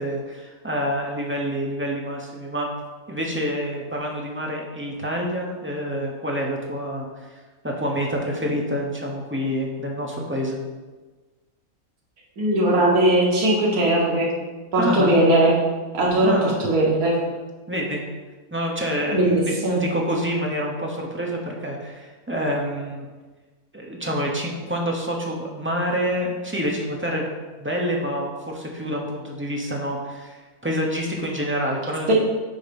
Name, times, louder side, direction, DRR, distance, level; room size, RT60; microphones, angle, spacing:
voice 1, 0.0-2.7 3.1-7.3 7.6-10.6 14.8-15.1 16.2-16.6 17.7-18.0 18.5-23.0 23.7-27.3 27.6-32.1, equal, 10° right, -1 dB, 0.7 m, -27 dB
voice 2, 12.4-14.3 14.7-15.5 15.9-16.3 16.6-17.2 19.1-19.8 32.1-32.2, right 1 dB, 80° right, -3 dB, 1.7 m, -19 dB
8.5 x 2.9 x 5.2 m, 1.3 s
omnidirectional pair, 1.5 m